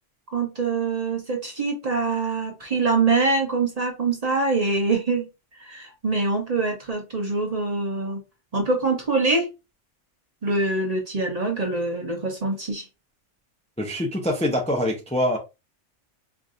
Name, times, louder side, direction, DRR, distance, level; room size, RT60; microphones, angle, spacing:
voice 1, 0.3-5.3 5.6-8.2 8.5-9.5 10.4-12.9, right 3 dB, 35° right, 0.9 m, -24 dB
voice 2, 13.8-15.4, left 1 dB, 5° left, 0.5 m, -24 dB
4.7 x 2.5 x 2.5 m
omnidirectional pair, 1.3 m